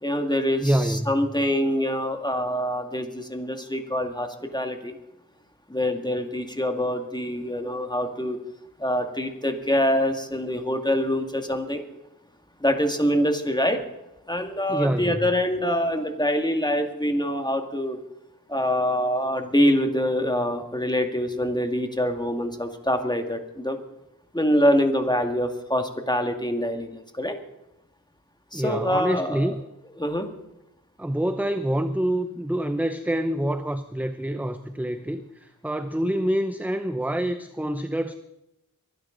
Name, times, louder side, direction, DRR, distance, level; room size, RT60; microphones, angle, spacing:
voice 1, 0.0-5.0 5.7-8.4 8.8-11.8 12.6-13.8 14.3-18.0 18.5-23.8 24.3-27.4 28.5-29.5 30.0-30.3, equal, 10° left, 5 dB, 2.0 m, -25 dB
voice 2, 0.6-1.1 14.7-15.3 28.5-29.6 31.0-38.1, right 1 dB, 5° right, 10 dB, 0.7 m, -26 dB
22.5 x 12.0 x 3.9 m, 0.90 s
wide cardioid pair, 55°, 34 cm